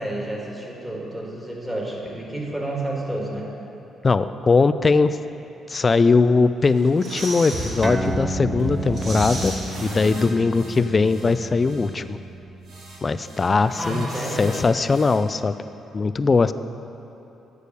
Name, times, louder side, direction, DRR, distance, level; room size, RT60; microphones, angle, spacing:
voice 1, 0.0-3.5 13.8-14.7, right 1 dB, 10° right, -3 dB, 2.0 m, -30 dB
voice 2, 4.0-5.2 5.7-9.5 9.8-12.2 13.0-14.1 14.4-15.6 15.9-16.5, left 4 dB, 30° left, 12 dB, 0.3 m, -20 dB
sound 1, 6.6-7.9 8.3-8.4 8.7-10.5 10.7-10.8, right 1 dB, 50° right, 1.9 m, -35 dB
sound 2, 7.5-7.7 8.0-8.2 8.6-8.8 9.1-9.3 9.7-11.3 11.6-11.9 12.6-15.1, right 1 dB, 75° right, 2.2 m, -35 dB
sound 3, 7.8-14.7, right 2 dB, 25° right, 0.5 m, -33 dB
10.5 x 4.9 x 6.8 m, 2.9 s
cardioid pair, 90°, 0 cm